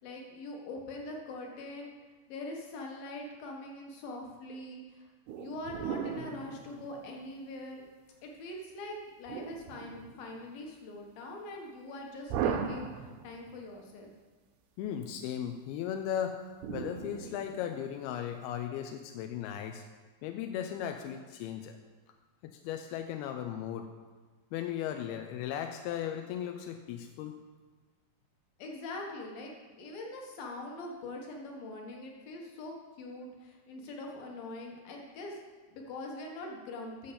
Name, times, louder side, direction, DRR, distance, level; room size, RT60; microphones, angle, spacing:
voice 1, 0.0-1.9 2.3-5.1 5.3-7.8 8.2-14.1 28.6-29.5 29.8-35.4 35.7-37.1, left 2 dB, 70° left, 1 dB, 3.1 m, -43 dB
sound 1, 5.3-7.6 9.3-10.5 12.3-13.6 16.6-18.1, right 7 dB, 85° right, 2.8 m, -38 dB
voice 2, 14.8-16.4 16.7-19.8 20.2-21.8 22.4-23.9 24.5-27.4, left 10 dB, 90° left, 5 dB, 2.5 m, -36 dB
9.3 x 7.0 x 6.9 m, 1.4 s
omnidirectional pair, 4.4 m